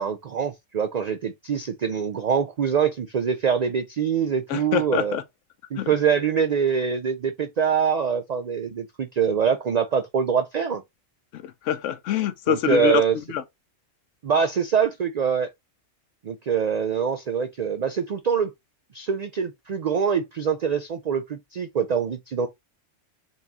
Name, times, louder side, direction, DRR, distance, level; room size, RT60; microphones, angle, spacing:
voice 1, 0.0-5.2 5.7-10.8 12.5-13.2 14.2-15.5 16.2-18.5 18.9-22.5, right 7 dB, 85° right, 0.3 m, -24 dB
voice 2, 4.5-5.2 5.8-5.9 11.3-13.0 13.3-13.4, left 10 dB, 80° left, 1.0 m, -25 dB
4.1 x 3.6 x 2.7 m
omnidirectional pair, 1.3 m